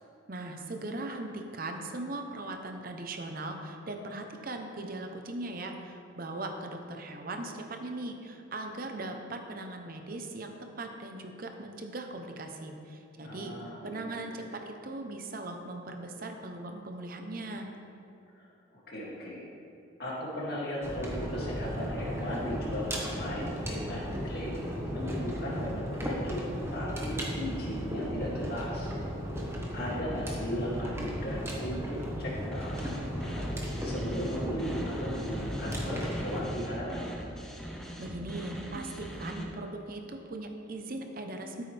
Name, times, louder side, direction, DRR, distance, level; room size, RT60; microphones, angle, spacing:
voice 1, 0.3-13.6 13.8-17.7 38.0-41.6, right 2 dB, 45° right, 4 dB, 0.8 m, -39 dB
voice 2, 13.2-13.8 14.2-14.4 18.4-18.5 18.9-19.4 20.0-24.6 24.9-26.4 26.7-28.9 29.7-33.5 33.8-37.2, equal, 50° left, -5 dB, 2.5 m, -37 dB
sound 1, 20.8-36.4, equal, 15° right, 1.3 m, -35 dB
sound 2, 32.5-39.4, equal, 5° left, 0.9 m, -41 dB
13.5 x 8.8 x 3.4 m, 2.8 s
head